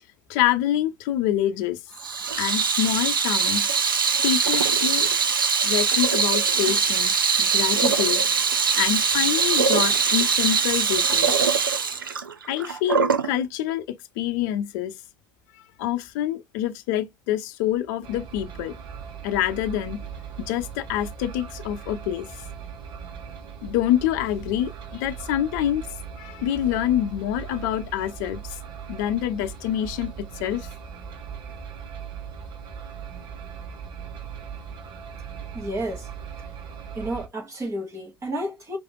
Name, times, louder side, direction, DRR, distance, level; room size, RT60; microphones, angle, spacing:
voice 1, 0.3-1.8 2.4-3.7 4.2-5.1 5.6-8.2 8.8-11.5 12.5-13.8 14.2-14.9 15.8-18.7 19.2-20.0 20.4-22.3 23.6-25.9 26.2-28.6 28.9-30.1 30.4-30.7, left 11 dB, 60° left, 0.7 m, -26 dB
Water tap faucet / Sink (filling or washing), 2.0-13.3, right 6 dB, 85° right, 0.6 m, -22 dB
sound 1, 18.0-37.3, right 7 dB, 50° right, 1.3 m, -39 dB
voice 2, 35.5-36.0 37.0-38.8, right 1 dB, 25° right, 2.7 m, -31 dB
4.9 x 3.4 x 2.3 m
figure-of-eight pair, 70°, 11 cm